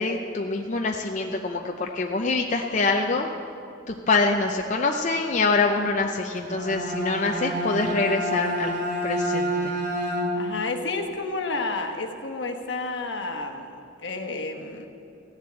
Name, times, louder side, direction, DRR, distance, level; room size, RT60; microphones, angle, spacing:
voice 1, 0.0-3.3 3.9-8.7 9.0-9.7, left 3 dB, 40° left, 2 dB, 0.6 m, -25 dB
Bowed string instrument, 6.4-10.7, equal, 55° right, 2.6 m, -28 dB
voice 2, 10.3-14.9, left 3 dB, 70° left, 4 dB, 1.3 m, -31 dB
15.5 x 7.3 x 8.7 m, 2.5 s
head